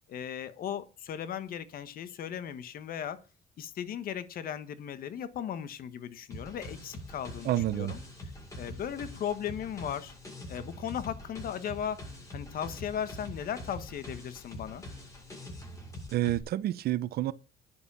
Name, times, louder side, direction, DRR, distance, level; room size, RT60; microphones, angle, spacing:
voice 1, 0.1-3.2 3.6-8.0 8.6-10.1 10.5-12.0 12.3-14.8, left 9 dB, 60° left, 1.5 m, -37 dB
sound 1, 6.3-16.4, left 1 dB, 20° left, 7.3 m, -44 dB
voice 2, 7.4-7.9 16.1-17.3, right 14 dB, 65° right, 0.9 m, -29 dB
10.5 x 7.0 x 7.1 m
cardioid pair, 110°, 17 cm